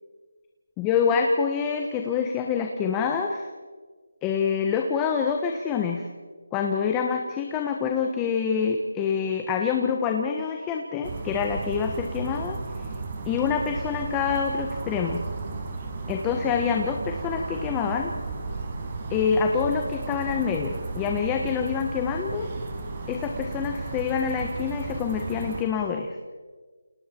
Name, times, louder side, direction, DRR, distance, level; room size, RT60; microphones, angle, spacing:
voice 1, 0.8-3.5 4.2-6.0 6.5-12.6 13.2-15.2 16.1-18.1 19.1-22.5 23.1-26.1, left 6 dB, 10° left, 3 dB, 1.3 m, -26 dB
sound 1, 11.0-25.6, right 3 dB, 30° right, 5.3 m, -34 dB
29.0 x 28.0 x 4.6 m, 1.4 s
figure-of-eight pair, 170°, 0 cm